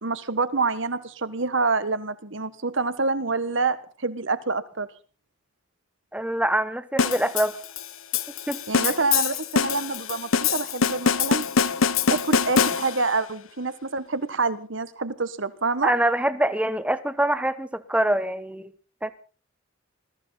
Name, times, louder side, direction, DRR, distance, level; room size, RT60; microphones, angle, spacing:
voice 1, 0.0-4.9 8.7-11.4 12.1-15.9, right 3 dB, 65° right, 14 dB, 1.4 m, -27 dB
voice 2, 6.1-7.6 8.5-8.6 15.8-18.7 19.0-19.1, right 1 dB, 5° right, 13 dB, 1.0 m, -24 dB
sound 1, 7.0-13.2, left 6 dB, 85° left, 1.0 m, -24 dB
21.0 x 14.5 x 4.2 m, 0.39 s
head